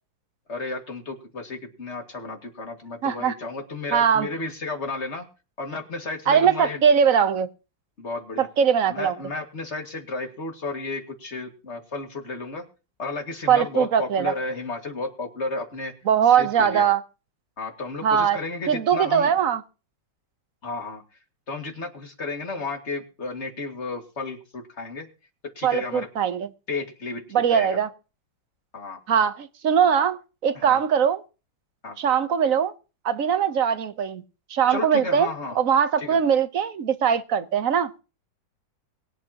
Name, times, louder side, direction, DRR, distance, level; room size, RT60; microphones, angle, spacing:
voice 1, 0.5-5.3 5.6-6.8 8.0-8.5 8.9-12.6 13.0-15.9 16.2-16.9 17.6-19.3 20.6-21.0 21.5-25.1 25.6-26.1 26.7-27.2 27.5-27.8 28.7-29.0 30.5-30.8 31.8-32.0 34.7-35.6 36.0-36.2, left 3 dB, 35° left, 2.4 m, -33 dB
voice 2, 3.0-3.3 3.9-4.3 6.3-7.5 8.4-9.1 13.5-14.3 16.1-17.0 18.0-18.4 18.7-19.6 25.6-26.5 27.3-27.9 29.1-31.2 32.0-32.7 33.0-34.2 34.5-35.3 35.6-37.9, right 7 dB, 50° right, 1.2 m, -21 dB
23.0 x 11.0 x 3.0 m
omnidirectional pair, 2.1 m